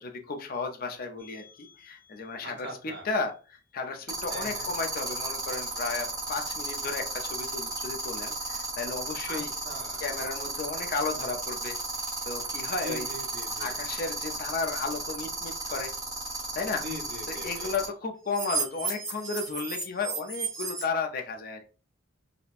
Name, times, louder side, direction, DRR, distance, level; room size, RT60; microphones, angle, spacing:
voice 1, 0.0-2.7 3.0-9.5 10.0-11.8 12.3-13.1 13.6-15.9 16.5-16.8 17.3-21.6, left 4 dB, 45° left, 4 dB, 0.5 m, -34 dB
sound 1, 1.2-1.5 4.1-17.8 18.3-20.8, right 3 dB, 20° right, 1.2 m, -34 dB
voice 2, 2.4-3.1 4.3-4.7 9.3-10.0 12.8-13.8 16.8-17.7, equal, 55° right, 0 dB, 1.0 m, -41 dB
4.2 x 2.1 x 2.4 m, 0.35 s
head